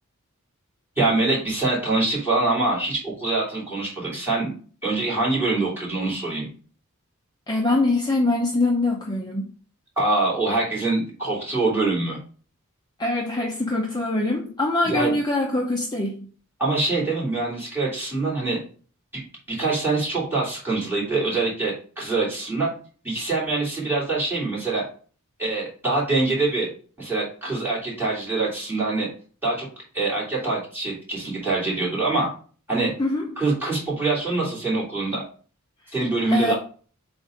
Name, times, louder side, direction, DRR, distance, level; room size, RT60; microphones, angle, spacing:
voice 1, 1.0-4.5 4.8-6.5 10.0-12.2 14.8-15.2 16.6-18.6 19.1-19.2 19.5-22.7 23.0-24.8 25.4-26.7 27.0-29.1 29.4-29.7 29.9-32.3 32.7-32.9 33.4-35.2 35.9-36.5, right 3 dB, 10° right, -5 dB, 3.0 m, -24 dB
voice 2, 7.5-9.5 13.0-16.3 33.0-33.4 36.3-36.5, left 2 dB, 20° left, 0 dB, 0.7 m, -23 dB
7.6 x 2.6 x 5.1 m, 0.42 s
head